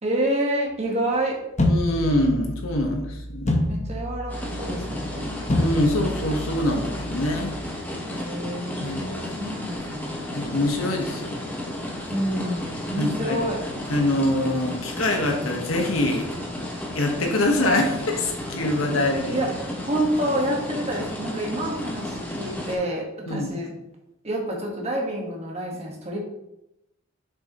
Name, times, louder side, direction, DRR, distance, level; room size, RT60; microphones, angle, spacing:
voice 1, 0.0-1.4 3.7-5.3 8.1-10.2 12.1-13.6 19.3-19.5 19.8-23.7 24.2-26.2, right 1 dB, 30° right, -1 dB, 1.4 m, -28 dB
voice 2, 1.6-3.6 5.6-7.6 8.8-9.1 10.3-11.4 13.0-13.4 13.9-16.2 16.9-19.4 23.3-23.5, left 1 dB, 80° left, 2 dB, 1.2 m, -24 dB
sound 1, 1.6-7.6, left 1 dB, 35° left, 0.9 m, -28 dB
sound 2, 4.3-22.8, left 1 dB, 10° left, 1.1 m, -33 dB
6.8 x 5.6 x 3.0 m, 0.86 s
head